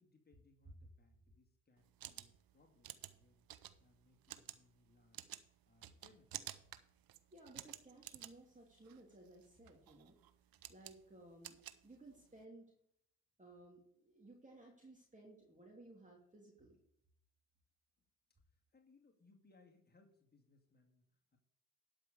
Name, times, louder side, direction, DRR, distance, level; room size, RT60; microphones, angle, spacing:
voice 1, 0.0-3.5 3.8-5.3 5.6-6.5 18.4-21.4, left 3 dB, 25° left, 1 dB, 2.2 m, -70 dB
sound 1, 1.8-12.4, right 13 dB, 65° right, 0.8 m, -53 dB
voice 2, 7.3-10.2 10.7-11.6 11.8-12.7 13.4-16.8, right 2 dB, 20° right, -1 dB, 2.9 m, -59 dB
11.5 x 5.2 x 6.6 m, 0.69 s
hypercardioid pair, 50°, 38 cm